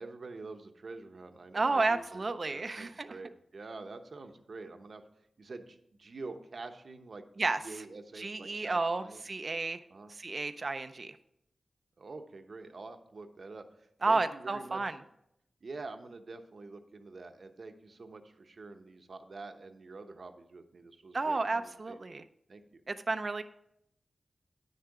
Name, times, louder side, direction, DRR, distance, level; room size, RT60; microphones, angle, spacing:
voice 1, 0.0-2.2 2.5-5.0 5.4-7.2 7.5-9.2 9.9-10.1 12.0-14.8 15.6-22.0 22.5-22.8, right 3 dB, 70° right, 7 dB, 0.9 m, -46 dB
voice 2, 1.5-3.1 7.4-7.8 8.2-9.8 10.1-11.2 14.0-14.9 21.1-22.2 22.9-23.4, right 3 dB, 55° right, 9 dB, 0.5 m, -32 dB
9.4 x 6.7 x 4.7 m, 0.77 s
cardioid pair, 50°, 0 cm